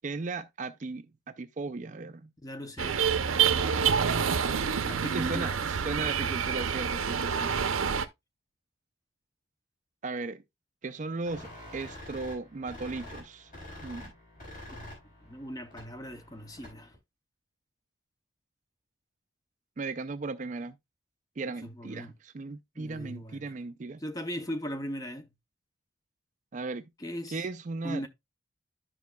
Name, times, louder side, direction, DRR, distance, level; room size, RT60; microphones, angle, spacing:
voice 1, 0.0-1.1 1.4-2.3 5.1-7.6 10.0-10.4 10.8-13.5 13.8-14.1 19.8-20.8 21.4-24.0 26.5-26.8 27.3-28.1, right 3 dB, 40° right, 0.4 m, -36 dB
voice 2, 2.4-3.0 4.8-5.6 6.2-6.4 7.3-7.7 14.7-15.0 15.2-16.9 21.5-22.2 22.8-23.5 24.0-25.3 27.0-27.4 27.8-28.1, equal, 20° left, 0.6 m, -39 dB
sound 1, 2.8-8.0, right 7 dB, 90° right, 0.6 m, -27 dB
sound 2, 11.3-17.0, left 1 dB, 40° left, 4.0 m, -47 dB
11.5 x 5.6 x 2.2 m
head